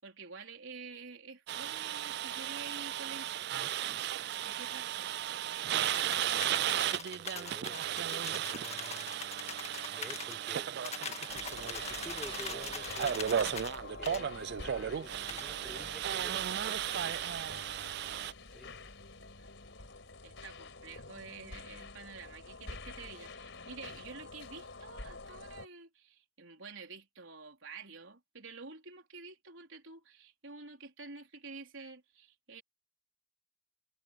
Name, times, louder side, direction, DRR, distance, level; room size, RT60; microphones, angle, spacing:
voice 1, 0.0-4.0 4.4-5.1 19.2-19.5 20.2-32.6, right 4 dB, 80° right, 4.2 m, -49 dB
sound 1, 1.5-18.3, right 10 dB, 55° right, 0.4 m, -35 dB
sound 2, 5.8-10.4 10.8-13.8 14.0-14.2 15.3-15.5, left 6 dB, 35° left, 1.6 m, -43 dB
voice 2, 5.8-9.1 9.9-10.8 11.6-13.7 14.0-17.2 18.5-18.7, equal, ahead, 3.9 m, -51 dB
sound 3, 11.3-25.7, left 3 dB, 65° left, 4.8 m, -48 dB
head